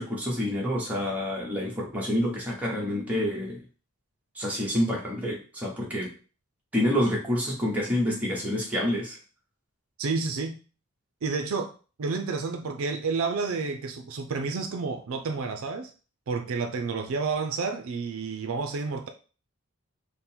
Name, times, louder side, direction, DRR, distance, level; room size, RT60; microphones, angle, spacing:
voice 1, 0.0-3.6 4.3-6.1 6.7-9.2, equal, 5° right, 1.0 m, -28 dB
voice 2, 10.0-10.6 11.2-11.7 12.0-15.9 16.3-19.1, right 4 dB, 65° right, 0.4 m, -30 dB
3.8 x 2.1 x 4.3 m
head